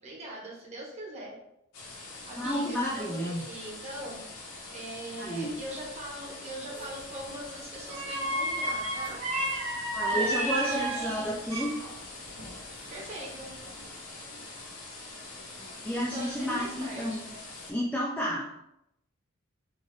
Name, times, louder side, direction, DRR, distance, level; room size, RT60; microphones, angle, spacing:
voice 1, 0.0-1.4 2.3-4.3 4.7-9.2 10.1-11.3 12.9-13.5 16.0-17.3, right 1 dB, 30° right, -5 dB, 1.1 m, -41 dB
sound 1, 1.7-17.7, left 2 dB, 85° left, 1.0 m, -44 dB
voice 2, 2.4-3.4 5.2-5.5 9.9-11.7 15.8-17.2 17.7-18.7, equal, 5° left, -5 dB, 0.4 m, -31 dB
sound 2, 6.7-7.1 7.9-11.9 12.3-13.2 13.6-13.9, right 1 dB, 80° right, 1.2 m, -32 dB
3.9 x 2.5 x 3.2 m, 0.82 s
head